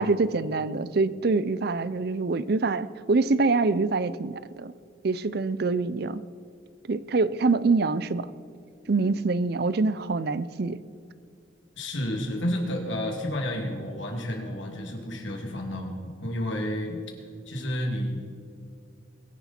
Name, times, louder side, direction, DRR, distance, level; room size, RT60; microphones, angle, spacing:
voice 1, 0.0-4.7 5.0-6.2 6.9-8.3 8.9-10.8, right 3 dB, 55° right, 16 dB, 0.5 m, -25 dB
voice 2, 11.7-17.0 17.5-18.2, left 1 dB, 80° left, 1 dB, 2.7 m, -31 dB
22.0 x 11.0 x 4.4 m, 2.3 s
head